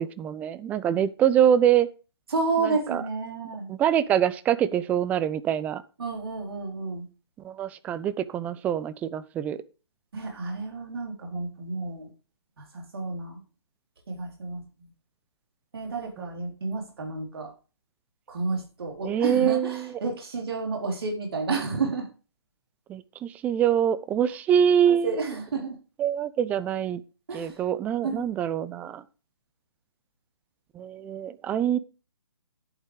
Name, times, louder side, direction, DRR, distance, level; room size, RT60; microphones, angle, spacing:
voice 1, 0.0-1.9 2.6-3.0 3.7-5.8 7.4-9.6 16.2-16.3 19.0-19.9 22.9-25.1 26.0-27.0 27.3-29.0 30.7-31.8, right 9 dB, 10° right, 16 dB, 0.4 m, -24 dB
voice 2, 2.3-3.7 6.0-7.1 10.1-12.1 12.6-13.4 14.1-14.9 15.7-17.5 18.3-22.1 24.9-25.8 27.3-27.6 28.0-28.3, right 4 dB, 65° right, 1 dB, 4.0 m, -31 dB
11.0 x 8.3 x 5.0 m, 0.35 s
figure-of-eight pair, 140°, 14 cm